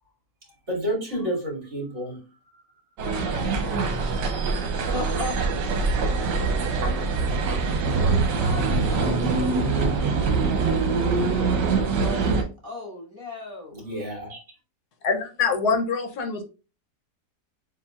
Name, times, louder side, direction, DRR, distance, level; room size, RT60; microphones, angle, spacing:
voice 1, 0.7-2.3 2.5-2.6 13.7-14.4, right 1 dB, 40° right, -2 dB, 2.4 m, -30 dB
voice 2, 3.0-3.8 4.2-5.4 5.8-7.1 8.0-13.8, left 1 dB, 10° right, -4 dB, 1.8 m, -38 dB
sound 1, 3.0-12.4, right 4 dB, 80° right, 1.4 m, -24 dB
voice 3, 15.0-16.4, left 5 dB, 70° left, 5 dB, 1.3 m, -24 dB
6.9 x 2.8 x 2.4 m, 0.33 s
omnidirectional pair, 1.8 m